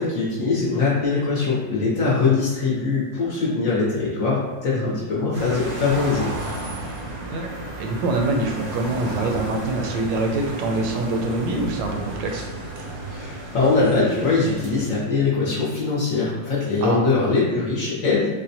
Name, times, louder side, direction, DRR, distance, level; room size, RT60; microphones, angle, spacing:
voice 1, 0.0-6.3 13.1-18.3, left 4 dB, 60° left, -6 dB, 0.9 m, -22 dB
sound 1, 5.3-15.0, right 2 dB, 65° right, 0.9 m, -33 dB
voice 2, 7.3-12.5 16.8-17.0, right 2 dB, 80° right, 2 dB, 1.3 m, -25 dB
4.1 x 2.1 x 2.6 m, 1.3 s
omnidirectional pair, 2.0 m